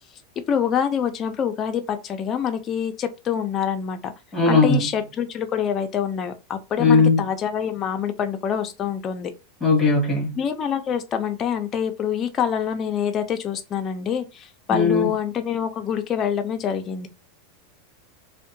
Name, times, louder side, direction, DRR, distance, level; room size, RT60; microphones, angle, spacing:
voice 1, 0.5-4.1 4.5-9.3 10.4-17.1, left 8 dB, 25° left, 0.4 m, -26 dB
voice 2, 4.3-4.9 6.8-7.2 9.6-10.4 14.7-15.1, left 3 dB, 5° left, 1.2 m, -18 dB
2.7 x 2.1 x 2.6 m
supercardioid pair, 160°, 0 cm